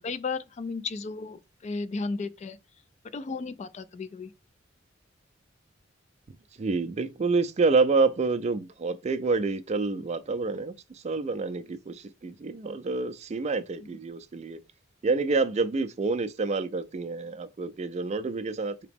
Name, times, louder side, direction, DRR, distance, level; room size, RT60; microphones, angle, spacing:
voice 1, 0.0-2.6 3.1-4.3, left 4 dB, 35° left, 0.3 m, -34 dB
voice 2, 6.6-14.6 15.0-18.9, right 3 dB, 35° right, 0.4 m, -28 dB
4.9 x 2.9 x 3.4 m
head